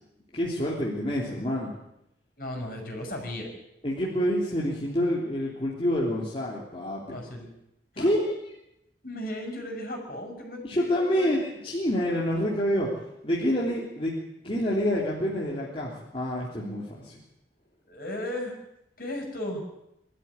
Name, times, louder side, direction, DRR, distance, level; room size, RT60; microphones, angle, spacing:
voice 1, 0.3-1.7 3.8-7.2 8.0-8.2 10.6-14.1 14.4-17.2, equal, 30° left, -5 dB, 3.4 m, -27 dB
voice 2, 2.4-3.5 7.1-7.5 7.9-8.1 9.0-11.4 17.9-18.5 19.0-19.6, left 1 dB, 55° left, 2 dB, 6.2 m, -35 dB
23.0 x 12.5 x 9.7 m, 0.84 s
head